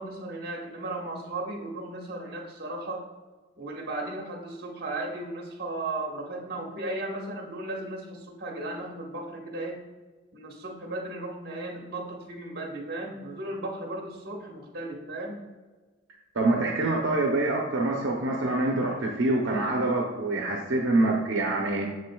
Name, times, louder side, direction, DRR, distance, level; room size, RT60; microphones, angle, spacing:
voice 1, 0.0-3.0 3.6-9.8 10.3-15.4, right 2 dB, 55° right, 1 dB, 1.3 m, -35 dB
voice 2, 16.4-21.9, right 2 dB, 80° right, 0 dB, 0.7 m, -25 dB
7.1 x 6.3 x 2.3 m, 1.3 s
head